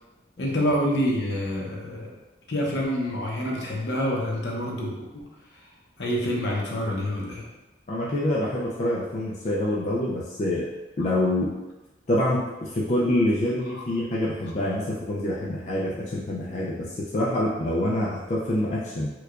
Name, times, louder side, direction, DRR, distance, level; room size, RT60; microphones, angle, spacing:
voice 1, 0.4-2.1 2.5-5.2 6.0-7.5, equal, 70° left, -2 dB, 0.7 m, -27 dB
voice 2, 7.9-10.7 11.0-11.5 12.1-19.1, left 1 dB, 40° left, -5 dB, 0.4 m, -26 dB
4.5 x 2.3 x 2.4 m, 1.1 s
head